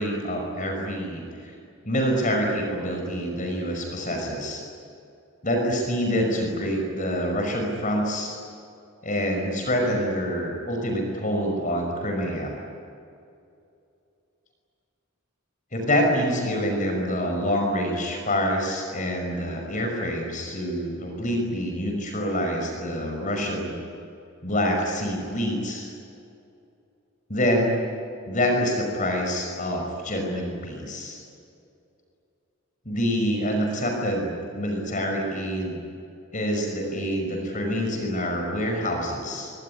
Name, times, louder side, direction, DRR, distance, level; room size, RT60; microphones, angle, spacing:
voice 1, 0.0-1.5 1.8-4.6 5.4-8.4 9.0-12.5 15.7-23.8 24.4-25.9 27.3-27.8 28.3-31.2 32.9-35.8 36.3-39.5, equal, 40° left, 2 dB, 5.7 m, -26 dB
25.5 x 23.5 x 9.7 m, 2.5 s
head